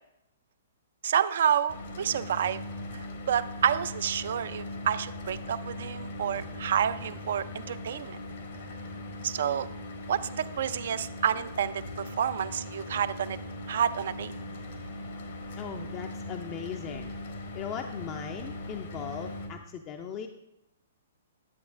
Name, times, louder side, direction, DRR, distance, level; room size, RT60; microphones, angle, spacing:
voice 1, 1.0-2.6 2.9-3.0 3.3-8.2 9.2-9.7 10.1-13.4 13.7-14.3, right 9 dB, 65° right, 14 dB, 0.4 m, -29 dB
Mechanical fan, 1.7-19.5, left 1 dB, 70° left, 1.4 m, -40 dB
voice 2, 15.6-17.1 17.5-20.3, left 7 dB, 30° left, 5 dB, 0.4 m, -38 dB
9.6 x 7.8 x 2.6 m, 0.87 s
hypercardioid pair, 130°, 0 cm